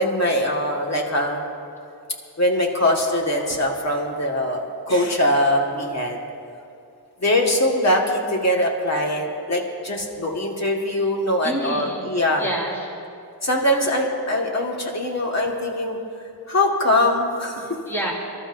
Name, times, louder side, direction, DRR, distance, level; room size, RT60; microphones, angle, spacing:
voice 1, 0.0-1.4 2.4-6.2 7.2-12.4 13.4-16.0 16.5-17.7, left 1 dB, 40° left, 0 dB, 1.8 m, -22 dB
voice 2, 11.4-12.1 12.3-12.9 17.6-18.1, equal, 5° left, -5 dB, 2.4 m, -29 dB
25.5 x 12.5 x 2.7 m, 2.5 s
wide cardioid pair, 105°, 40 cm